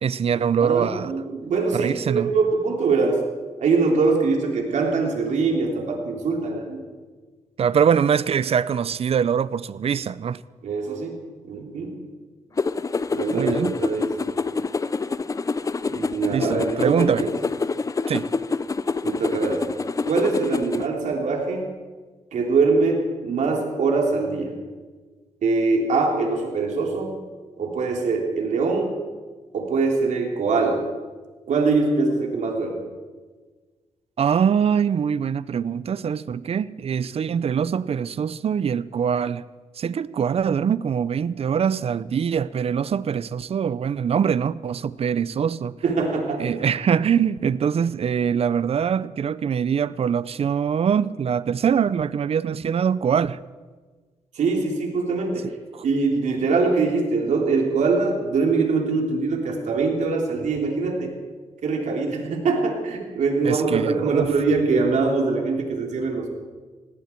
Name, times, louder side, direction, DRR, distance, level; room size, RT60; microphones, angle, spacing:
voice 1, 0.0-1.1 1.7-2.3 7.6-10.4 13.3-13.7 16.3-17.3 18.1-18.3 34.2-39.5 39.8-45.8 46.4-53.4 55.7-55.8 63.4-64.3, right 7 dB, 55° right, 0.5 m, -23 dB
voice 2, 0.6-3.2 3.6-6.8 10.6-11.2 11.4-12.0 13.1-14.1 15.9-17.3 19.0-19.6 20.0-21.7 22.3-24.5 25.4-27.2 27.6-29.0 29.5-30.8 31.5-32.8 45.8-46.5 54.3-55.5 55.8-61.1 61.6-66.3, right 4 dB, 75° right, 3.2 m, -23 dB
sound 1, 12.6-20.9, left 4 dB, 25° left, 0.5 m, -27 dB
19.0 x 17.0 x 4.5 m
cardioid pair, 90°, 12 cm